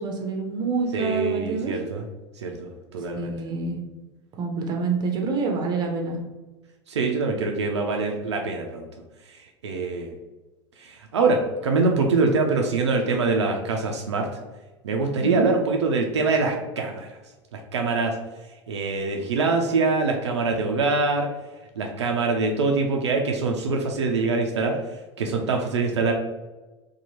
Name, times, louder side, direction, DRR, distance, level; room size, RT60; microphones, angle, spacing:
voice 1, 0.0-1.7 3.1-3.8 4.4-6.2 15.2-15.5, right 4 dB, 30° right, 2 dB, 0.6 m, -27 dB
voice 2, 0.9-2.1 2.4-3.3 6.9-8.9 9.3-10.1 10.8-14.3 14.8-17.2 17.5-18.1 18.7-21.3 21.8-24.8 25.2-26.1, right 3 dB, 70° right, 2 dB, 0.4 m, -24 dB
2.7 x 2.2 x 2.9 m, 1.1 s
figure-of-eight pair, 85°, 15 cm